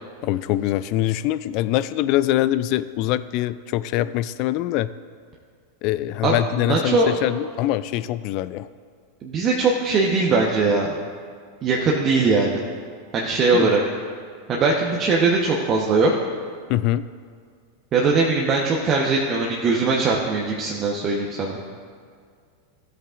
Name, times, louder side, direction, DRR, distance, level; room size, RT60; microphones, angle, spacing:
voice 1, 0.2-4.9 5.8-8.7 13.5-13.7 16.7-17.1, left 14 dB, 50° left, 15 dB, 0.3 m, -23 dB
voice 2, 6.2-7.1 9.2-10.9 11.6-12.6 13.1-13.8 14.5-16.1 17.9-21.6, right 3 dB, 35° right, -2 dB, 1.0 m, -20 dB
14.5 x 7.9 x 2.5 m, 2.1 s
hypercardioid pair, 90°, 0 cm